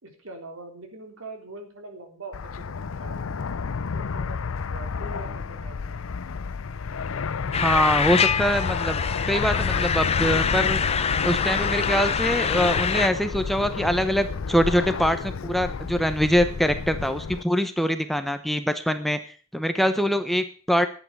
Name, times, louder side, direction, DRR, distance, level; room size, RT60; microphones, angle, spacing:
voice 1, 0.0-3.4 3.8-6.1, right 2 dB, 80° right, 3 dB, 3.7 m, -43 dB
Fixed-wing aircraft airplane, 2.3-17.4, left 5 dB, 80° left, 0.6 m, -31 dB
sound 1, 7.5-13.1, left 6 dB, 30° left, 0.7 m, -25 dB
voice 2, 7.6-10.8 11.2-19.2 19.5-20.9, equal, ahead, 9 dB, 0.9 m, -24 dB
11.5 x 8.9 x 6.9 m, 0.40 s
head